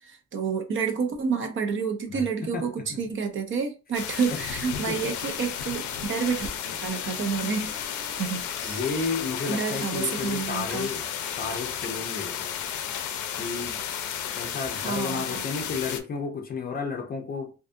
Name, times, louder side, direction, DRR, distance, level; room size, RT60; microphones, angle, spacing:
voice 1, 0.0-6.5 6.8-7.7 8.2-8.8 9.5-10.9 14.7-15.4, right 6 dB, 45° right, 0.6 m, -29 dB
voice 2, 2.1-3.0 4.3-4.4 4.9-5.1 8.6-11.1 11.3-12.6 13.4-13.8 14.3-17.5, left 4 dB, 30° left, 0.5 m, -32 dB
sound 1, 3.9-16.0, left 9 dB, 90° left, 0.5 m, -33 dB
sound 2, 5.6-12.3, right 5 dB, 65° right, 0.9 m, -50 dB
2.6 x 2.4 x 2.5 m
cardioid pair, 135°, 29 cm